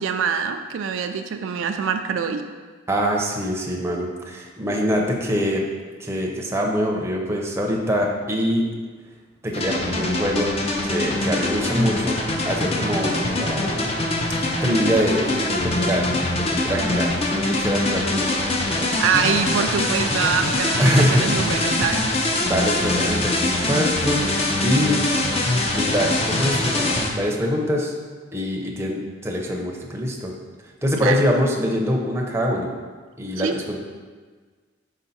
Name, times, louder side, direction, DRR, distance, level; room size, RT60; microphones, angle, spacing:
voice 1, 0.0-2.4 19.0-22.0 31.0-31.2 33.4-33.6, right 6 dB, 75° right, 6 dB, 0.4 m, -24 dB
voice 2, 2.9-5.6 6.0-8.6 9.4-10.5 10.8-12.2 12.4-13.9 14.6-18.3 18.6-18.9 20.8-21.2 22.4-24.3 24.6-25.1 25.7-27.9 28.3-30.3 30.8-32.7 33.2-33.8, equal, 15° right, -1 dB, 0.6 m, -24 dB
sound 1, 9.5-27.1, left 2 dB, 30° left, 0.6 m, -23 dB
5.6 x 4.5 x 4.1 m, 1.5 s
head